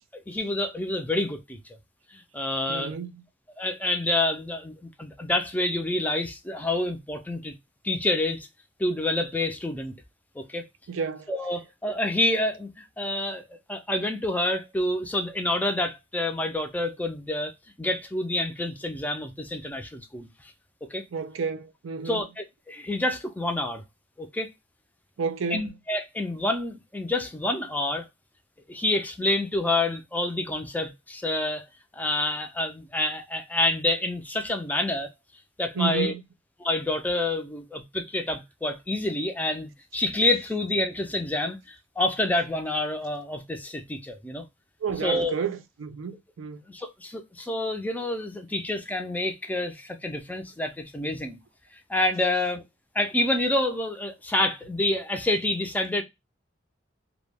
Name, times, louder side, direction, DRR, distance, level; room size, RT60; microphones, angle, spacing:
voice 1, 0.3-1.6 2.1-2.9 3.6-7.5 7.8-8.5 8.8-10.0 10.4-10.7 11.3-17.5 17.8-20.3 20.8-21.0 22.0-23.8 24.2-24.5 25.5-28.1 28.7-31.7 31.9-35.1 35.6-36.1 36.6-44.4 45.0-45.3 46.7-51.4 51.9-52.6 52.9-56.0, left 1 dB, 10° left, 0.4 m, -28 dB
voice 2, 2.7-3.2 10.9-11.3 21.1-22.2 25.2-25.8 35.7-36.2 44.8-46.6, right 6 dB, 80° right, 0.4 m, -31 dB
2.2 x 2.1 x 3.3 m
head